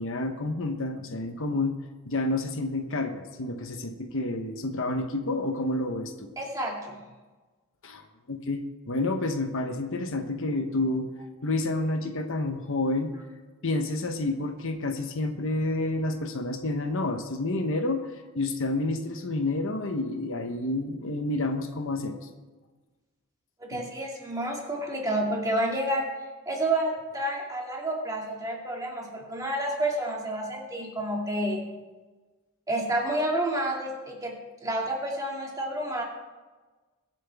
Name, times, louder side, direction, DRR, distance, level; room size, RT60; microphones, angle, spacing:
voice 1, 0.0-1.8 2.1-6.3 7.8-11.1 11.4-13.1 13.6-22.2 23.7-23.8, left 2 dB, 60° left, 6 dB, 1.0 m, -29 dB
voice 2, 6.4-7.0 23.6-26.1 26.5-31.6 32.7-34.3 34.6-36.0, right 1 dB, 15° right, -1 dB, 2.3 m, -29 dB
22.5 x 7.6 x 3.5 m, 1.3 s
head